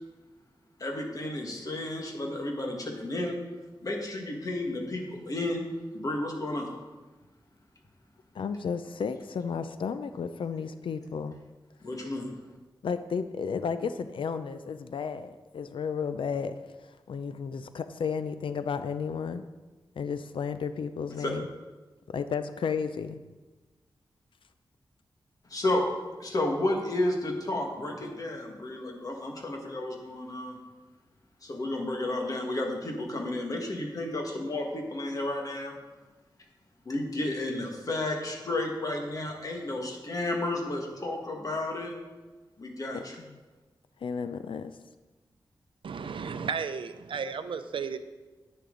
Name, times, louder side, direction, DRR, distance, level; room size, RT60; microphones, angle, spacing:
voice 1, 0.8-3.4 3.8-5.7 5.9-6.8 11.8-12.3 21.2-21.3 25.5-25.9 26.2-30.6 31.4-35.8 36.8-41.9 42.6-43.1, left 1 dB, 45° left, 1 dB, 1.7 m, -32 dB
voice 2, 8.3-11.4 12.8-19.4 20.0-21.5 22.1-23.2 42.9-43.0 44.0-44.8, left 6 dB, 90° left, 11 dB, 0.5 m, -33 dB
voice 3, 45.8-48.0, right 6 dB, 85° right, 10 dB, 0.6 m, -33 dB
10.0 x 9.5 x 3.9 m, 1.2 s
wide cardioid pair, 135°, 8 cm